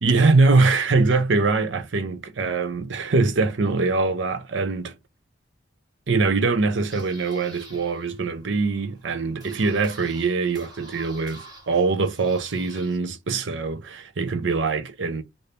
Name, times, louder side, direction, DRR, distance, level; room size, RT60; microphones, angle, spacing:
voice 1, 0.0-4.9 6.1-15.2, right 3 dB, 70° right, 0.6 m, -23 dB
sound 1, 6.5-13.0, right 2 dB, 20° right, 1.1 m, -48 dB
3.3 x 2.7 x 2.8 m
head